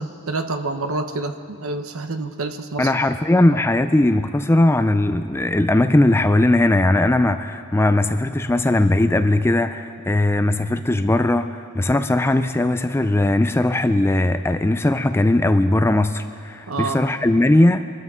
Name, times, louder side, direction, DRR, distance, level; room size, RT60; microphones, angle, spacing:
voice 1, 0.0-2.9 16.7-17.0, right 3 dB, 70° right, 7 dB, 0.9 m, -27 dB
voice 2, 2.8-17.8, left 1 dB, 10° left, 10 dB, 0.3 m, -19 dB
25.0 x 13.0 x 3.7 m, 2.3 s
head